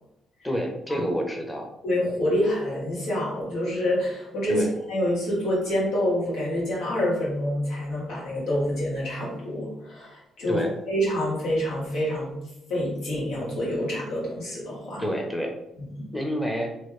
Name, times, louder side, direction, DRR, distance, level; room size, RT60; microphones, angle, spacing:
voice 1, 0.4-1.7 4.5-4.7 10.5-10.7 15.0-15.5 16.1-16.7, equal, 10° left, 2 dB, 0.9 m, -28 dB
voice 2, 1.8-10.6 10.9-12.3 12.7-15.0 16.0-16.1, equal, 75° left, -6 dB, 1.4 m, -27 dB
3.0 x 2.4 x 3.2 m, 0.86 s
supercardioid pair, 50°, 0 cm